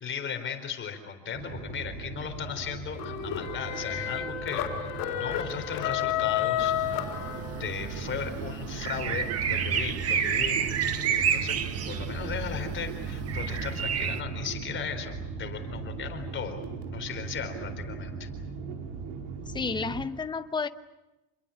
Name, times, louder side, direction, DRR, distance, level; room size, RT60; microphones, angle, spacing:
voice 1, 0.0-7.0 7.6-10.7 11.1-11.6 11.9-18.3, left 7 dB, 25° left, 6 dB, 4.2 m, -37 dB
sound 1, 1.3-20.1, right 4 dB, 65° right, 4.7 m, -38 dB
sound 2, 3.0-7.8, left 12 dB, 50° left, 4.4 m, -31 dB
sound 3, 6.6-14.2, right 8 dB, 35° right, 1.8 m, -31 dB
voice 2, 19.5-20.7, left 4 dB, 10° left, 10 dB, 0.9 m, -31 dB
28.0 x 22.5 x 8.7 m, 1.0 s
cardioid pair, 150°, 43 cm